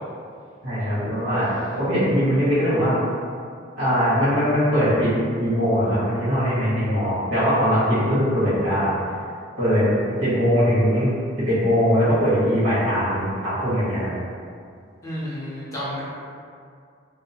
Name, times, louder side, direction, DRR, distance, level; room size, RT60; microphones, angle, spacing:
voice 1, 0.6-3.0 3.8-5.1 5.4-8.9 9.6-9.8 10.2-14.2, equal, 65° right, -12 dB, 1.4 m, -21 dB
voice 2, 1.4-1.8 15.0-16.0, equal, 15° left, -9 dB, 0.5 m, -32 dB
2.8 x 2.0 x 2.7 m, 2.3 s
head